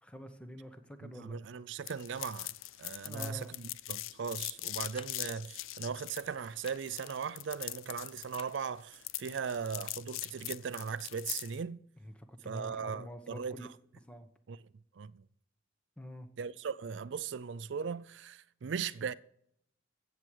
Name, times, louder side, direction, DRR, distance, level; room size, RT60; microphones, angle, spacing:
voice 1, 0.0-1.4 3.0-3.5 12.0-13.7 14.1-14.3 16.0-16.3, equal, 5° left, 1.0 m, -47 dB
voice 2, 1.0-11.8 12.5-13.7 14.5-14.6 15.0-15.2 16.4-19.1, right 6 dB, 65° right, 0.4 m, -38 dB
sound 1, 1.9-11.6, left 16 dB, 85° left, 0.5 m, -41 dB
sound 2, 4.6-5.2 6.5-6.8 8.3-8.5, left 5 dB, 30° left, 0.8 m, -50 dB
15.5 x 7.4 x 4.8 m
head